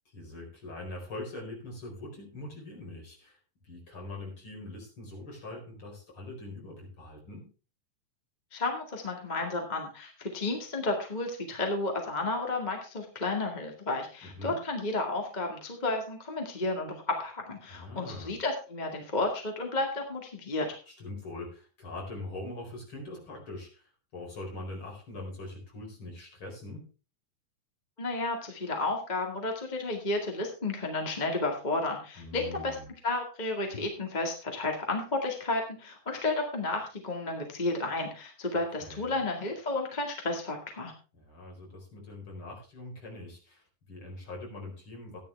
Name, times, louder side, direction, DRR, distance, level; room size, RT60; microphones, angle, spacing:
voice 1, 0.1-3.4 3.6-7.5 14.2-14.6 17.7-18.3 20.9-26.9 32.2-32.9 38.8-39.2 41.1-45.2, left 2 dB, 35° left, 0 dB, 5.2 m, -42 dB
voice 2, 8.5-20.8 28.0-32.8 33.0-40.9, left 2 dB, 20° left, 2 dB, 1.3 m, -32 dB
14.5 x 10.5 x 3.4 m, 0.34 s
omnidirectional pair, 4.0 m